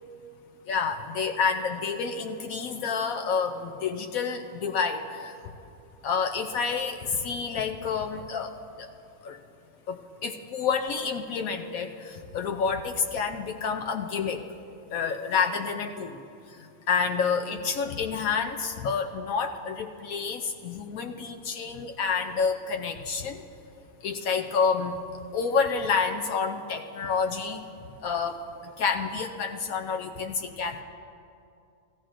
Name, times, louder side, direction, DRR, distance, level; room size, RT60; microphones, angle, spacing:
voice 1, 0.7-5.0 6.0-7.0 7.2-8.5 9.2-9.4 9.9-11.9 12.3-14.4 14.9-16.1 16.9-23.4 24.0-25.0 25.3-27.6 28.0-28.4 28.8-30.8, left 5 dB, 75° left, 4 dB, 1.0 m, -28 dB
17.0 x 14.0 x 2.5 m, 2.6 s
omnidirectional pair, 1.5 m